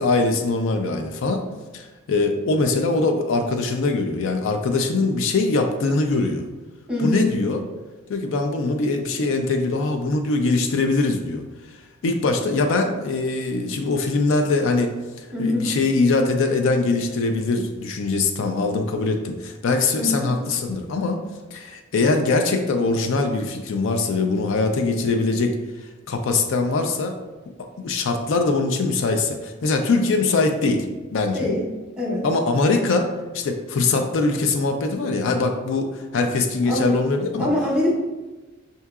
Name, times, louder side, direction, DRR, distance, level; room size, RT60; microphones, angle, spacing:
voice 1, 0.0-1.4 1.7-6.5 7.0-7.6 8.1-11.4 12.0-14.9 15.2-21.2 21.5-25.6 26.1-27.1 27.8-30.9 31.1-31.5 32.2-33.1 33.3-37.5, left 3 dB, 65° left, 5 dB, 0.4 m, -22 dB
voice 2, 6.9-7.3 15.3-15.7 20.0-20.3 31.3-31.7 32.0-32.3 36.7-36.9 37.4-37.9, left 1 dB, 5° right, -4 dB, 0.9 m, -23 dB
5.5 x 2.7 x 2.3 m, 1.2 s
head